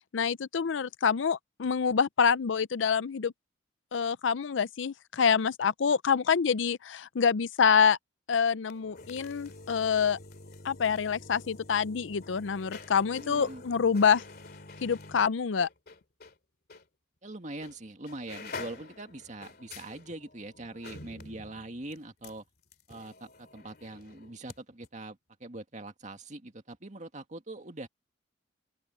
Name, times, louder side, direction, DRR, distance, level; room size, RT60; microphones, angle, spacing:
voice 1, 0.1-3.3 3.9-8.0 8.3-10.2 10.6-14.2 14.8-15.7, left 6 dB, 85° left, 0.5 m, -26 dB
sound 1, 8.6-16.4 16.7-16.8 17.6-17.8 18.0-24.6 24.8-24.9, left 3 dB, 55° left, 2.7 m, -48 dB
voice 2, 13.1-13.6 17.2-22.5 22.9-27.9, right 2 dB, 40° right, 2.0 m, -43 dB
open air
head